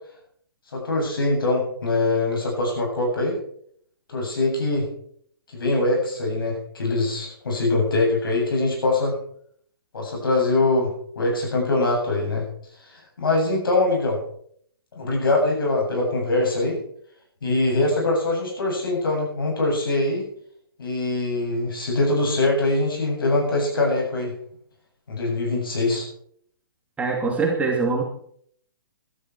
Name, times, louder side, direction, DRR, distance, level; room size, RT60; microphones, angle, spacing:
voice 1, 0.7-3.4 4.1-4.9 5.5-9.1 9.9-12.4 13.2-14.2 15.0-16.8 17.4-20.3 20.8-24.3 25.1-26.0, left 2 dB, 70° left, 0 dB, 7.8 m, -23 dB
voice 2, 27.0-28.0, right 4 dB, 10° right, 0 dB, 2.6 m, -23 dB
15.5 x 12.5 x 4.7 m, 0.63 s
figure-of-eight pair, 130°, 12 cm